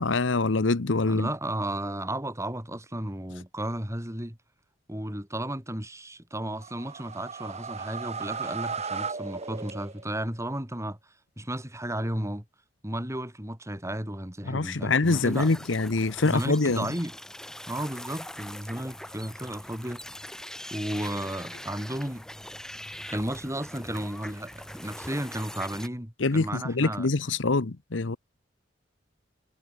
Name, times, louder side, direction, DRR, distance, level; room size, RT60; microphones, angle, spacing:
voice 1, 0.0-1.3 14.5-16.9 26.2-28.2, left 3 dB, 80° left, 1.0 m, -25 dB
voice 2, 1.1-4.4 4.9-11.0 11.4-12.4 12.8-15.5 16.2-17.1 17.7-20.0 20.7-22.2 23.1-27.1, right 1 dB, 15° right, 4.4 m, -33 dB
sound 1, 6.5-10.2, right 5 dB, 35° right, 1.6 m, -36 dB
sound 2, 15.0-25.9, left 1 dB, 5° left, 2.7 m, -42 dB
head